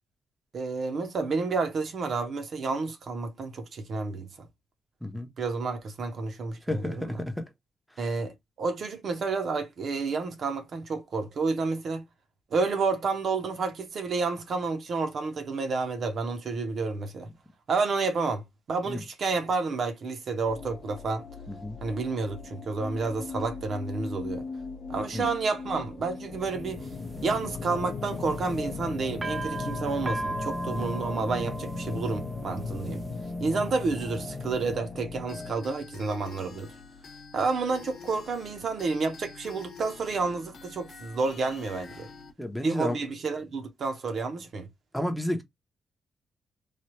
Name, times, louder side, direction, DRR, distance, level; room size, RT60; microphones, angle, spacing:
voice 1, 0.5-4.5 5.4-7.2 8.0-12.0 12.5-17.3 17.7-18.4 18.7-21.2 21.8-24.4 24.9-26.9 27.2-33.0 33.4-36.7 37.3-42.1 42.6-44.7, right 4 dB, 55° right, 0.7 m, -30 dB
voice 2, 6.7-7.5 18.9-19.0 21.5-21.8 25.1-25.3 42.4-43.0 44.9-45.4, left 1 dB, ahead, 0.7 m, -31 dB
sound 1, 20.5-35.5, left 4 dB, 45° left, 0.6 m, -37 dB
sound 2, 26.4-34.7, right 3 dB, 25° right, 0.3 m, -39 dB
sound 3, 35.3-42.3, left 5 dB, 65° left, 0.9 m, -47 dB
3.2 x 2.3 x 2.9 m
cardioid pair, 110°, 0 cm